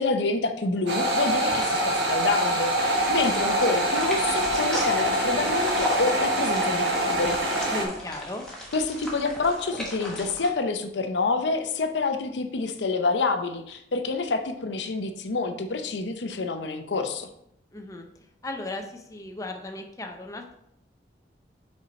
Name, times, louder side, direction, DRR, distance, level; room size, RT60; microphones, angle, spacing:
voice 1, 0.0-7.4 8.7-17.3, left 3 dB, 90° left, 7 dB, 0.7 m, -27 dB
sound 1, 0.9-7.8, right 1 dB, 75° right, 1.6 m, -25 dB
sound 2, 3.0-10.5, left 1 dB, 5° left, 1.3 m, -37 dB
voice 2, 7.7-8.5 17.7-18.1 18.4-20.6, left 2 dB, 20° left, 3 dB, 0.6 m, -36 dB
5.5 x 4.5 x 5.2 m, 0.75 s
head